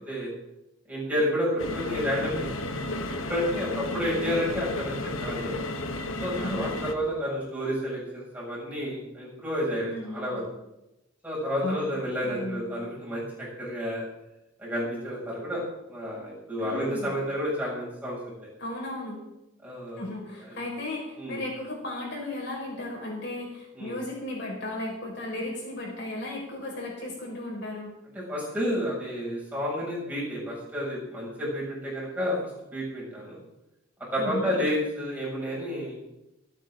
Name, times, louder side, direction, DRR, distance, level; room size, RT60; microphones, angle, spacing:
voice 1, 0.9-2.5 3.0-5.5 6.2-10.4 11.2-14.0 14.6-15.6 15.9-18.5 19.6-20.0 20.4-20.5 21.2-21.4 23.7-24.0 28.1-33.4 34.1-36.0, equal, 10° right, -6 dB, 6.9 m, -30 dB
sound 1, 1.6-6.9, left 2 dB, 80° left, 1.3 m, -33 dB
voice 2, 6.3-6.8 9.8-10.4 11.6-11.9 12.2-12.6 16.6-17.1 18.6-19.2 20.0-28.0 34.2-34.6, left 1 dB, 55° left, -3 dB, 5.5 m, -35 dB
27.5 x 9.2 x 3.9 m, 0.93 s
head